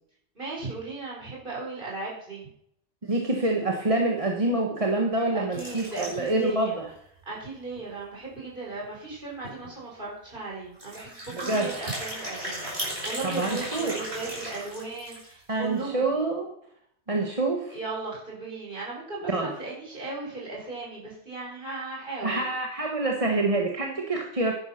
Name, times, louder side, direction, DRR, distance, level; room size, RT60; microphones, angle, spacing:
voice 1, 0.4-2.5 5.3-6.8 7.3-16.1 17.7-22.5, right 3 dB, 50° right, -4 dB, 5.2 m, -36 dB
voice 2, 3.1-6.9 11.3-11.7 13.2-14.0 15.5-16.5 17.1-17.8 19.3-19.5 22.2-24.5, right 2 dB, 30° right, 0 dB, 1.4 m, -26 dB
sound 1, 5.5-6.5 6.9-7.0 7.2-7.3 7.8-7.9 9.1-9.2 9.4-9.7 10.7-15.4, right 1 dB, 70° right, 5.8 m, -36 dB
11.0 x 10.5 x 5.8 m, 0.71 s
omnidirectional pair, 1.1 m